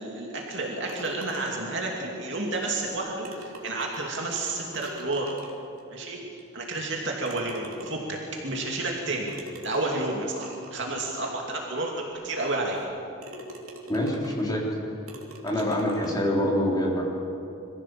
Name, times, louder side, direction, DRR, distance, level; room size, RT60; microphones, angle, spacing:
voice 1, 0.0-5.3 5.9-6.2 6.5-9.4 9.6-12.8 15.5-15.6, right 2 dB, 55° right, -1 dB, 2.7 m, -31 dB
sound 1, 0.9-1.9 2.9-3.0 3.2-5.8 6.4-6.5 7.2-8.2 9.3-10.8 11.5-11.6 12.1-12.2 12.7-12.9 13.2-14.5 15.1-16.2, right 1 dB, 75° right, 3.0 m, -44 dB
voice 2, 13.9-14.7 15.4-17.0, left 1 dB, 20° left, -3 dB, 3.8 m, -25 dB
23.5 x 15.5 x 7.7 m, 2.8 s
head